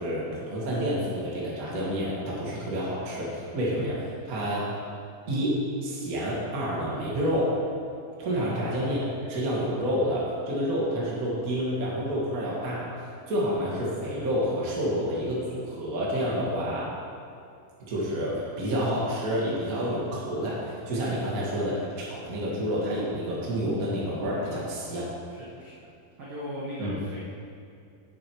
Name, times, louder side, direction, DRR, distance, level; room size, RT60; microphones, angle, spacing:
voice 1, 0.0-4.6 5.3-7.5 8.2-9.0 9.2-12.9 13.3-16.9 17.9-25.0 26.8-26.9, equal, 40° right, -6 dB, 1.3 m, -29 dB
voice 2, 25.3-25.9 26.2-27.2, equal, 75° right, -6 dB, 1.2 m, -38 dB
8.3 x 7.3 x 4.6 m, 2.4 s
omnidirectional pair, 4.0 m